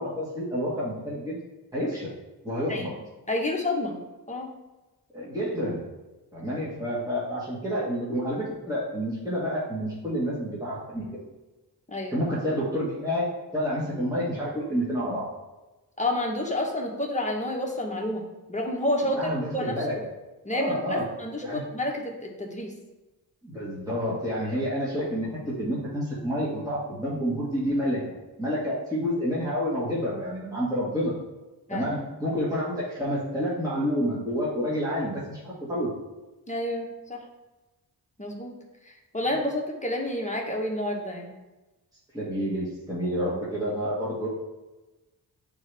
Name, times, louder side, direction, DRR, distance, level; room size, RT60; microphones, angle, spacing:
voice 1, 0.0-1.4 1.7-2.1 2.4-2.9 5.1-5.8 6.3-11.1 12.1-13.3 13.5-15.3 19.0-19.9 20.5-21.0 21.4-21.6 23.4-28.0 28.4-31.1 31.7-35.9 42.1-44.3, equal, 10° right, -8 dB, 1.6 m, -29 dB
voice 2, 3.3-4.0 4.3-4.6 11.9-12.2 16.0-19.8 20.4-22.7 31.7-31.9 36.5-37.2 38.2-38.6 38.9-41.3, left 1 dB, 20° left, 0 dB, 1.1 m, -29 dB
8.3 x 3.8 x 3.4 m, 1.1 s
cardioid pair, 80°, 40 cm